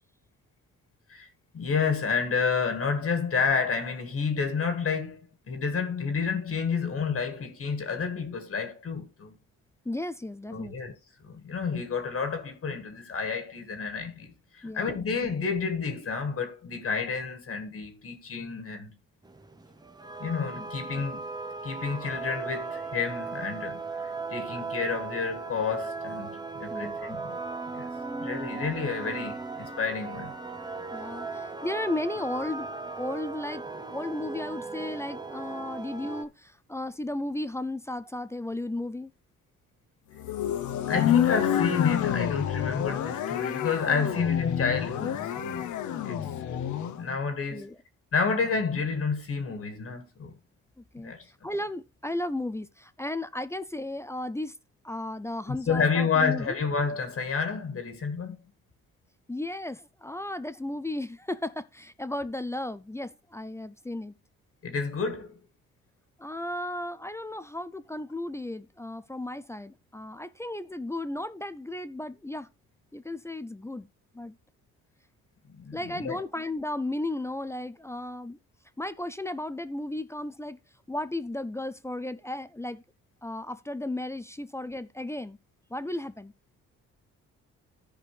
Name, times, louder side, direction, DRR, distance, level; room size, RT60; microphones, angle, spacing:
voice 1, 1.5-5.2 5.5-9.3 10.5-10.9 11.2-18.9 20.2-21.2 21.6-27.4 27.7-27.9 28.2-30.3 40.9-45.7 46.0-46.2 47.0-47.7 48.1-50.3 51.0-51.2 55.5-58.4 64.6-65.4 75.5-76.2, left 5 dB, 50° left, 1.8 m, -30 dB
voice 2, 9.8-10.7 14.6-15.0 20.9-21.1 26.7-27.2 30.9-32.7 33.0-39.1 45.9-46.3 47.5-47.8 50.8-54.6 54.8-56.6 59.3-64.1 66.2-72.5 72.9-73.9 74.1-74.3 75.7-78.4 78.8-80.6 80.9-82.8 83.2-85.4 85.7-86.3, left 1 dB, 10° left, 0.4 m, -35 dB
sound 1, 19.2-36.2, right 3 dB, 15° right, 0.9 m, -37 dB
sound 2, 40.2-47.0, left 10 dB, 75° left, 0.8 m, -28 dB
14.0 x 5.0 x 3.3 m
cardioid pair, 90°, 30 cm